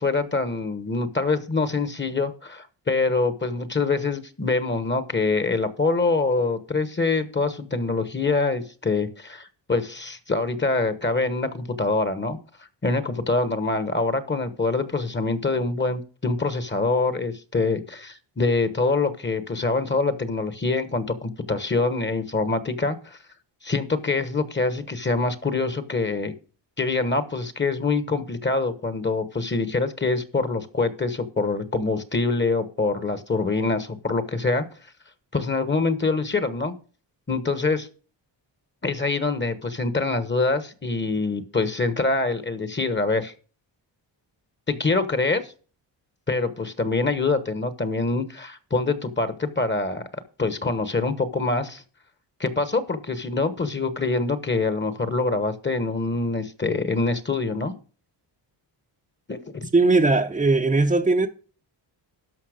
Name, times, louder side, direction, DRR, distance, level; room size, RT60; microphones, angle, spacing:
voice 1, 0.0-12.4 12.8-23.2 23.6-26.3 26.8-34.6 35.3-36.7 37.3-37.9 38.8-43.3 44.7-45.5 46.3-50.0 50.4-51.8 52.4-57.7 59.3-59.7, left 3 dB, 25° left, 1.1 m, -25 dB
voice 2, 59.7-61.3, right 3 dB, 15° right, 0.7 m, -19 dB
12.5 x 5.7 x 5.0 m
cardioid pair, 100°, 45 cm